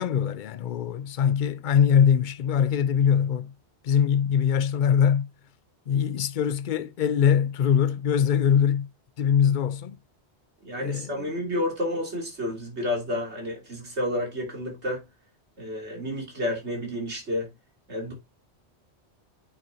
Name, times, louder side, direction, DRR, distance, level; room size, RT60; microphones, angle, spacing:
voice 1, 0.0-3.5 3.8-5.3 5.9-8.9 9.2-10.0 10.8-11.3, left 8 dB, 55° left, 0.7 m, -22 dB
voice 2, 10.6-15.0 15.6-17.5 17.9-18.1, left 1 dB, 75° right, 3.4 m, -30 dB
8.9 x 6.8 x 2.8 m
omnidirectional pair, 1.1 m